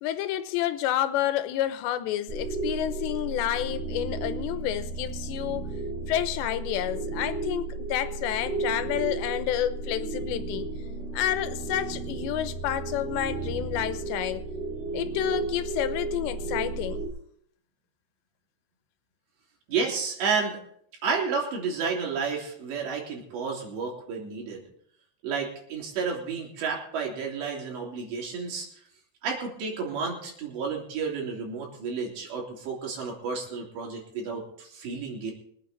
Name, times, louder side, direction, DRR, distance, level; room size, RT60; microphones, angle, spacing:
voice 1, 0.0-5.7 6.1-10.7 11.1-14.5 14.9-17.0, left 12 dB, 80° left, 11 dB, 3.0 m, -29 dB
sound 1, 2.3-17.1, right 3 dB, 55° right, 3.1 m, -33 dB
voice 2, 19.7-20.6 21.0-24.6 25.2-28.7 29.2-35.3, right 5 dB, 75° right, -2 dB, 5.5 m, -31 dB
24.5 x 9.0 x 3.9 m, 0.66 s
omnidirectional pair, 5.1 m